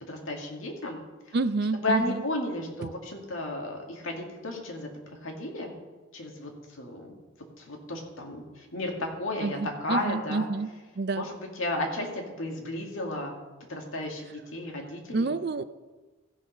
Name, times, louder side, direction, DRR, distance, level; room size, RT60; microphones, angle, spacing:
voice 1, 0.1-1.0 1.3-1.4 1.8-5.7 6.1-6.5 6.8-7.1 7.6-10.5 11.1-13.3 13.7-15.3, left 1 dB, 80° left, 1 dB, 2.1 m, -33 dB
voice 2, 1.3-2.2 2.8-2.9 9.4-10.7 11.0-11.2 15.1-15.6, right 3 dB, 50° right, 13 dB, 0.5 m, -28 dB
15.0 x 6.3 x 5.2 m, 1.2 s
head